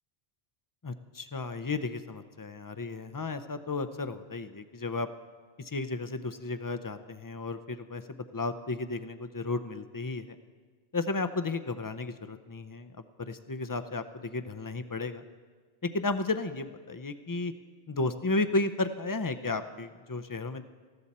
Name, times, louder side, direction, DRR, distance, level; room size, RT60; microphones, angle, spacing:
voice 1, 0.8-5.1 5.6-10.4 10.9-12.9 13.2-15.2 15.8-17.5 17.9-20.7, left 3 dB, 30° left, 9 dB, 0.4 m, -33 dB
19.5 x 14.5 x 4.2 m, 1.5 s
omnidirectional pair, 1.1 m